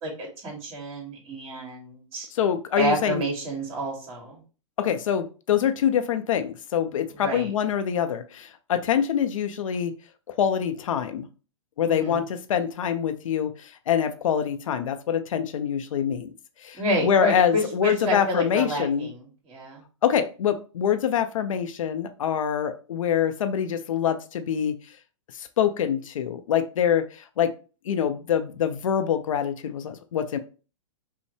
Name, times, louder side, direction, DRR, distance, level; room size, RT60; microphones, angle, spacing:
voice 1, 0.0-2.3 2.8-4.4 7.1-7.5 11.8-12.2 16.8-19.8, equal, 35° right, -1 dB, 2.2 m, -29 dB
voice 2, 2.3-3.2 4.8-9.9 10.4-11.3 11.8-16.3 16.6-19.1 20.0-24.8 25.3-27.5 27.9-30.4, left 8 dB, 75° left, 9 dB, 0.5 m, -25 dB
5.4 x 2.1 x 3.2 m, 0.36 s
hypercardioid pair, 120°, 17 cm